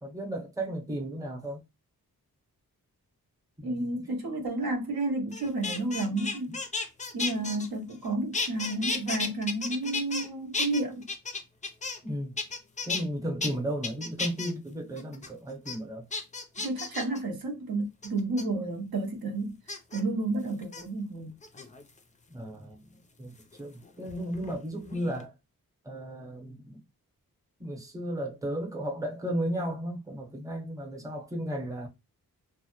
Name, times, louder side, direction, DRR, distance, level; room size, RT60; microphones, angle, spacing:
voice 1, 0.0-1.6 3.6-4.1 6.5-6.6 12.0-12.3 12.8-16.0 22.3-22.9 23.2-25.3 25.8-26.8 27.6-31.9, right 1 dB, 10° right, 0.8 m, -34 dB
voice 2, 3.6-6.6 7.1-11.1 16.6-19.6 19.9-21.3, right 2 dB, 70° right, 0.8 m, -31 dB
sound 1, 5.3-8.1 8.3-10.3 10.5-12.1 12.4-13.0 13.4-13.5 13.8-14.5 15.0-15.3 15.7-15.8 16.1-17.2 18.0-18.4 19.7-20.0 20.6-20.8 21.4-22.0 23.4-24.6 24.9-25.2, left 4 dB, 20° left, 0.4 m, -34 dB
2.2 x 2.0 x 2.9 m
cardioid pair, 60°, 37 cm